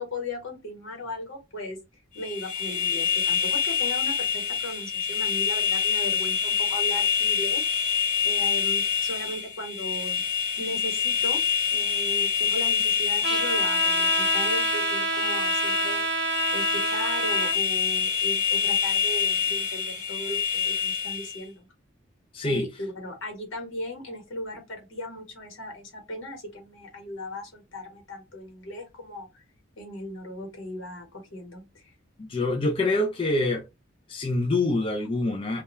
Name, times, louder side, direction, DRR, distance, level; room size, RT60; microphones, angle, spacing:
voice 1, 0.0-1.8 2.1-7.9 8.2-10.2 10.6-11.4 11.7-21.7 22.4-29.4 29.8-31.9, left 1 dB, 90° left, 1.1 m, -37 dB
sound 1, 2.2-21.4, left 7 dB, 45° left, 0.7 m, -26 dB
Trumpet, 13.2-17.6, right 4 dB, 70° right, 0.7 m, -28 dB
voice 2, 22.3-22.6 32.2-33.6 34.1-35.6, left 2 dB, 25° left, 0.3 m, -25 dB
2.2 x 2.2 x 2.9 m
head